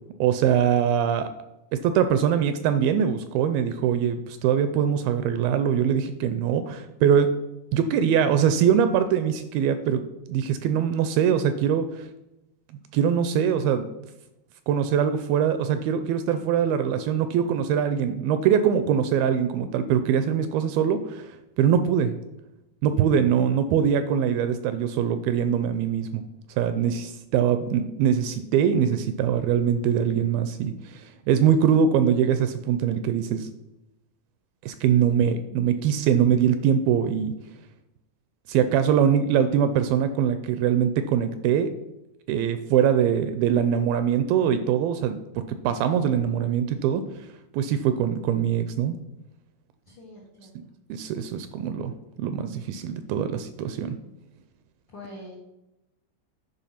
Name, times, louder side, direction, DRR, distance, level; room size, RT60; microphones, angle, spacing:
voice 1, 0.2-1.3 1.8-7.3 7.7-10.0 10.3-12.1 12.9-13.9 14.7-21.3 21.6-22.1 22.8-26.2 26.6-33.5 34.6-37.3 38.5-41.7 42.3-45.2 45.5-47.0 47.5-49.0 50.9-51.9 52.2-54.0, right 8 dB, 80° right, 10 dB, 2.2 m, -23 dB
voice 2, 49.9-50.6 54.9-55.4, left 1 dB, 65° left, -3 dB, 1.1 m, -44 dB
10.5 x 4.8 x 5.7 m, 0.93 s
omnidirectional pair, 4.5 m